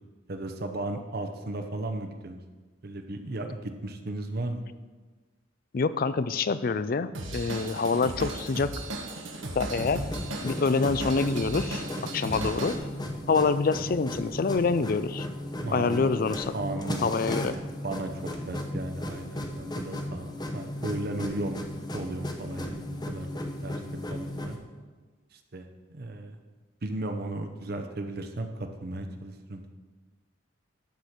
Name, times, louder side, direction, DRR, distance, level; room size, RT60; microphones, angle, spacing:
voice 1, 0.3-2.4 2.8-4.6 15.6-16.0 16.5-17.4 17.8-21.6 21.9-23.3 23.6-23.8 24.1-24.6 25.3-26.4 26.8-29.7, right 2 dB, 50° right, 6 dB, 0.7 m, -35 dB
voice 2, 5.7-8.9 9.6-10.0 10.4-12.8 13.3-15.3 15.7-16.5 17.0-17.6, left 4 dB, 45° left, 14 dB, 0.4 m, -26 dB
Drum kit / Drum, 7.1-12.8, right 1 dB, 75° right, 1.4 m, -36 dB
sound 1, 7.6-17.9 18.3-18.4, equal, 30° right, 1.5 m, -52 dB
sound 2, 9.7-24.6, left 1 dB, 20° left, 0.8 m, -36 dB
12.0 x 4.4 x 6.6 m, 1.3 s
head